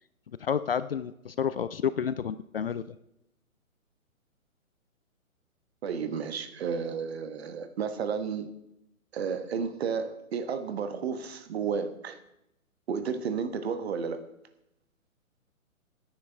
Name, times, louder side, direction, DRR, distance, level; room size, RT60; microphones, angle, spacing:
voice 1, 0.4-2.9, left 7 dB, 45° left, 14 dB, 0.5 m, -30 dB
voice 2, 5.8-8.5 9.1-12.2 12.9-14.3, right 6 dB, 45° right, 9 dB, 1.3 m, -32 dB
17.5 x 9.7 x 3.5 m, 0.83 s
figure-of-eight pair, 130°, 42 cm